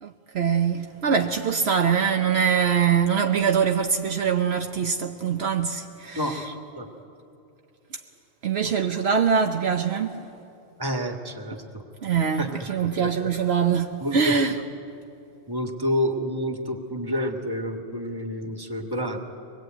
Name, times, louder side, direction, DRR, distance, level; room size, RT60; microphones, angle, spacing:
voice 1, 0.0-6.5 8.4-10.2 12.0-14.6, right 7 dB, 70° right, 1.1 m, -23 dB
voice 2, 6.2-6.9 10.8-11.8 12.4-12.5 14.0-14.2 15.5-19.2, equal, 20° right, 1.9 m, -29 dB
24.0 x 20.0 x 9.0 m
omnidirectional pair, 1.2 m